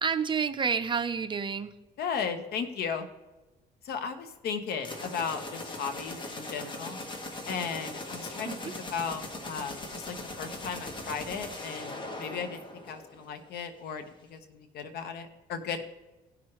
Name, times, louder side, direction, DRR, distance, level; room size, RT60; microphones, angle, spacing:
voice 1, 0.0-1.7 8.5-8.7, right 6 dB, 30° right, 9 dB, 0.8 m, -29 dB
voice 2, 2.0-3.1 3.8-7.0 7.5-15.8, left 6 dB, 70° left, 8 dB, 1.2 m, -36 dB
sound 1, 4.8-13.4, left 2 dB, 30° left, 1.4 m, -40 dB
17.5 x 6.0 x 3.1 m, 1.1 s
cardioid pair, 110°, 17 cm